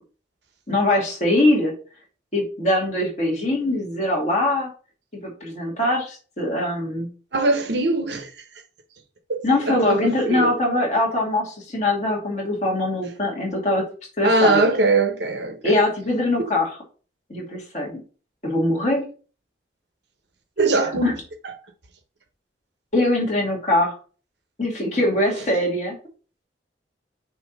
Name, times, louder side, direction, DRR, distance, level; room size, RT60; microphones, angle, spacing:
voice 1, 0.7-1.7 2.3-4.7 5.1-7.1 9.4-13.8 14.2-14.6 15.6-16.7 17.3-18.0 18.4-19.0 20.8-21.1 22.9-23.9 24.6-26.0, left 1 dB, 40° left, 2.3 m, -22 dB
voice 2, 7.3-8.3 9.3-10.5 14.2-15.8 20.6-21.1, right 2 dB, 75° right, 1.1 m, -21 dB
6.2 x 3.0 x 5.3 m
head